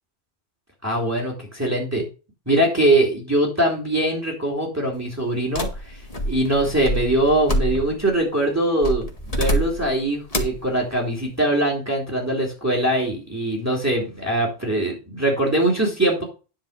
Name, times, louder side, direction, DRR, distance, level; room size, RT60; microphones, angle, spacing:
voice 1, 0.8-2.1 2.5-16.2, right 1 dB, 15° right, -1 dB, 3.1 m, -22 dB
sound 1, 5.5-8.1 8.8-9.9 10.3-10.7, equal, 30° left, 1.9 m, -26 dB
10.5 x 4.6 x 6.6 m, 0.32 s
omnidirectional pair, 1.2 m